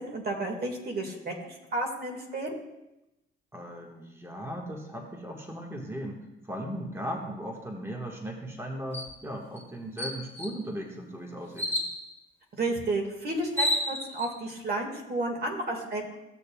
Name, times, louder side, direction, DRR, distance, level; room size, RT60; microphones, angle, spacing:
voice 1, 0.0-2.5 12.6-16.0, right 2 dB, 50° right, 2 dB, 1.8 m, -32 dB
voice 2, 3.5-6.2 6.4-11.7, equal, 15° right, 0 dB, 1.5 m, -37 dB
sound 1, 8.9-9.1 9.6-9.7 10.0-10.6 11.6-11.9 13.0-13.1 13.4-14.3, left 1 dB, 10° left, 1.9 m, -30 dB
15.5 x 6.6 x 2.3 m, 0.93 s
cardioid pair, 90°, 20 cm